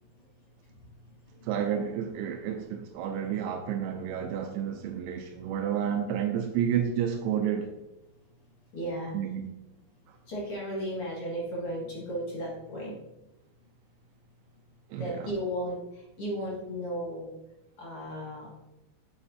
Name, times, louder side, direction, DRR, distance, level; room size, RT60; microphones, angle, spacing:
voice 1, 0.6-1.5 8.7-9.2 10.2-13.0 15.0-17.3 17.8-18.5, equal, 50° left, 1.9 m, -35 dB
voice 2, 1.4-7.7 9.1-9.4 10.1-10.2 14.9-15.3, right 9 dB, 85° right, 2.6 m, -30 dB
8.2 x 7.7 x 2.7 m
omnidirectional pair, 4.5 m